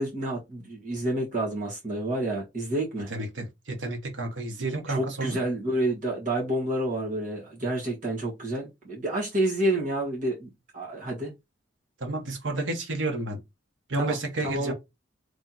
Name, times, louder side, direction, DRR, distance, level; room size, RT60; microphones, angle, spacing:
voice 1, 0.0-3.1 4.9-11.3 14.0-14.1 14.4-14.7, right 1 dB, 40° right, 1.4 m, -29 dB
voice 2, 3.1-5.4 12.0-13.4 13.9-14.7, right 2 dB, 80° right, 1.1 m, -30 dB
3.3 x 2.9 x 3.8 m
head